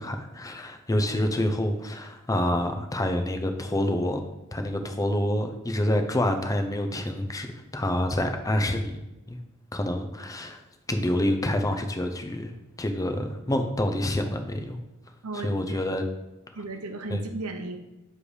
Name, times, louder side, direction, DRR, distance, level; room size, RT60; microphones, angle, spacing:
voice 1, 0.0-4.2 4.5-7.5 7.7-9.0 9.3-9.4 9.7-10.6 10.9-12.5 12.8-14.8 15.4-16.0 17.1-17.2, left 1 dB, 15° left, 5 dB, 0.6 m, -27 dB
voice 2, 15.2-15.8 16.5-17.8, right 2 dB, 85° right, 5 dB, 0.8 m, -35 dB
7.5 x 3.3 x 4.8 m, 0.99 s
head